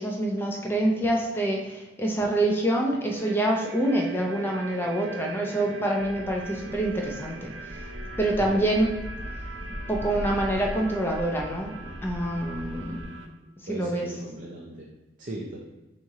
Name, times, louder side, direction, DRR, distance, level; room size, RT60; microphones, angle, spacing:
voice 1, 0.0-7.5 8.2-8.9 9.9-11.7 12.0-13.1 13.7-14.1, right 1 dB, 10° left, 0 dB, 0.5 m, -26 dB
sound 1, 3.2-13.3, right 3 dB, 90° right, 0.5 m, -42 dB
sound 2, 6.0-13.0, equal, 50° left, 1.0 m, -39 dB
voice 2, 13.4-14.9 15.2-15.6, right 1 dB, 45° right, -3 dB, 0.5 m, -38 dB
4.2 x 3.1 x 3.6 m, 1.0 s
head